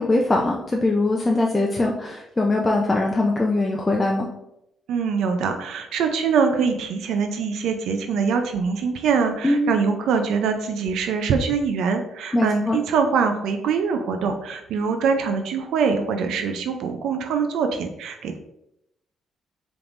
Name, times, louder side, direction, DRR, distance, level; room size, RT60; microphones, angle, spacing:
voice 1, 0.0-4.3 9.4-9.8 12.3-12.8, left 2 dB, 20° left, -1 dB, 0.5 m, -21 dB
voice 2, 4.9-18.4, right 5 dB, 80° right, 6 dB, 0.4 m, -23 dB
4.8 x 3.5 x 2.5 m, 0.83 s
cardioid pair, 90°, 0 cm